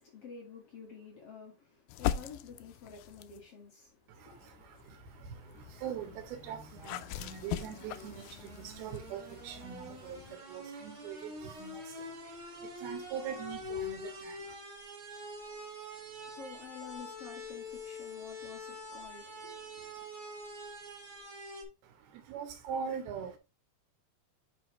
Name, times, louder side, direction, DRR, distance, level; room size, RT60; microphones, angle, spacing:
voice 1, 0.0-4.6 15.9-20.1, left 6 dB, 50° left, 2.2 m, -50 dB
sound 1, 1.9-3.5 4.1-10.4, left 12 dB, 85° left, 1.9 m, -41 dB
voice 2, 4.1-14.5 21.8-23.4, right 7 dB, 85° right, 3.1 m, -43 dB
sound 2, 4.9-21.6, left 1 dB, 40° right, 1.4 m, -46 dB
8.3 x 4.8 x 3.1 m
omnidirectional pair, 4.4 m